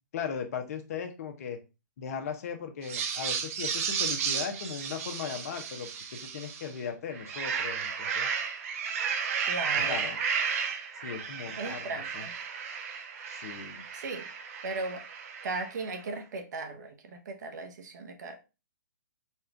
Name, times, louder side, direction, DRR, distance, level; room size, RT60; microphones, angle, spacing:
voice 1, 0.1-1.6 2.0-8.3 9.7-10.2 11.0-12.2 13.3-13.8, left 6 dB, 50° left, 0.9 m, -38 dB
sound 1, 2.8-6.7 7.1-15.8, right 6 dB, 45° right, 0.6 m, -33 dB
voice 2, 9.5-10.0 11.6-12.3 13.9-14.3 14.6-15.1 15.4-18.4, right 3 dB, 60° right, 1.0 m, -37 dB
4.2 x 2.4 x 3.4 m
hypercardioid pair, 150°, 11 cm